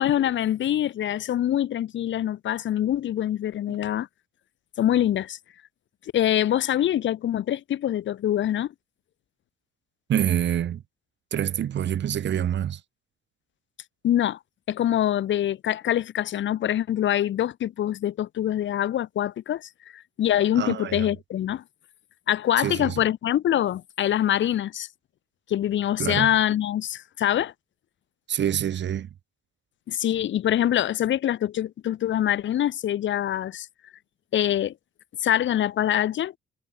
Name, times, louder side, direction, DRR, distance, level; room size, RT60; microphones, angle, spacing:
voice 1, 0.0-4.1 4.8-5.4 6.1-8.7 14.0-14.4 14.7-21.6 22.3-24.9 25.5-27.5 29.9-33.7 34.3-34.7 35.2-36.3, left 11 dB, 70° left, 2.7 m, -24 dB
voice 2, 10.1-10.8 11.3-12.8 20.6-21.1 22.6-23.0 26.0-26.3 28.3-29.1, right 10 dB, 65° right, 3.9 m, -26 dB
cardioid pair, 90°, 20 cm